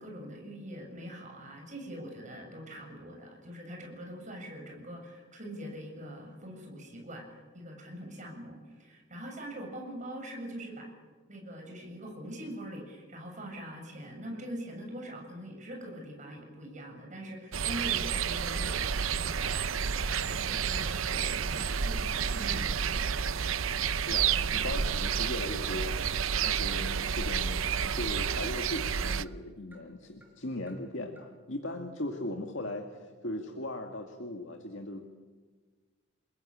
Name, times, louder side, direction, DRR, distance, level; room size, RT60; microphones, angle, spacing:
voice 1, 0.0-10.9 11.3-19.6 20.0-23.2, equal, 35° right, 2 dB, 7.5 m, -43 dB
sound 1, 17.5-29.2, right 7 dB, 80° right, 0.7 m, -30 dB
voice 2, 24.0-25.9 26.4-27.6 28.0-35.1, left 1 dB, 65° left, 3 dB, 2.2 m, -38 dB
sound 2, 24.5-24.6 24.9-25.1 25.4-25.5 25.9-26.0 26.4-26.5 26.8-27.0 27.3-27.5 27.8-28.0 28.3-28.4 28.7-28.9 29.2-29.4 29.7-29.8 30.2-30.3 30.7-30.8 31.1-31.3, right 1 dB, 10° right, 5.1 m, -57 dB
29.0 x 21.5 x 8.8 m, 1.4 s
head